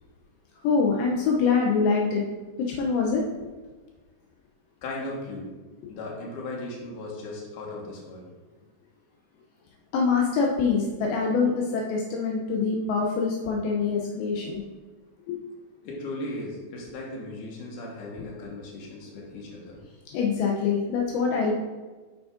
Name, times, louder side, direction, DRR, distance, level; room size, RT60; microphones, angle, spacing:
voice 1, 0.6-2.2 2.7-3.2 9.9-14.6 15.3-15.4 20.1-21.5, left 5 dB, 80° left, -1 dB, 2.5 m, -24 dB
voice 2, 4.8-5.5 5.9-8.3 15.8-19.8, left 2 dB, 65° left, -3 dB, 2.6 m, -37 dB
9.4 x 6.1 x 2.5 m, 1.3 s
omnidirectional pair, 4.3 m